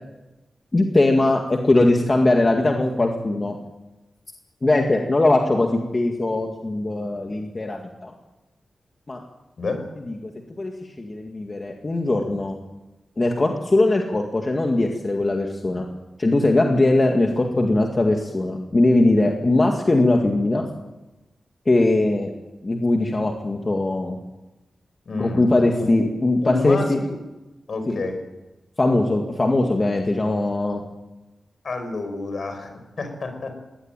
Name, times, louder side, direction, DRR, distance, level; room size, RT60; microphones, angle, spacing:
voice 1, 0.7-3.6 4.6-8.1 9.1-9.2 10.1-10.3 10.6-10.7 11.0-12.6 13.2-15.9 16.2-20.6 21.7-22.3 22.6-24.2 25.2-27.0 27.9-28.0 28.8-30.8, left 2 dB, 25° left, 2 dB, 2.0 m, -20 dB
voice 2, 25.0-25.5 25.8-25.9 26.4-27.2 27.7-28.1 31.6-33.6, left 3 dB, 55° left, 7 dB, 5.0 m, -28 dB
21.0 x 17.5 x 9.2 m, 1.0 s
wide cardioid pair, 150°, 0 cm